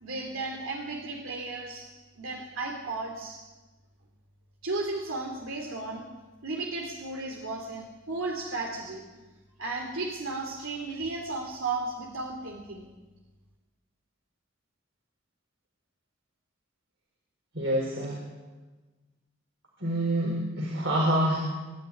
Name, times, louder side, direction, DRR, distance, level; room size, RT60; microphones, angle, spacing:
voice 1, 0.0-1.9 2.2-3.4 4.6-6.0 6.4-9.0 9.6-12.9, right 3 dB, 85° right, 1 dB, 2.7 m, -34 dB
voice 2, 17.5-18.2 19.8-21.4, right 1 dB, 65° right, -1 dB, 4.4 m, -26 dB
24.0 x 12.0 x 9.8 m, 1.2 s
head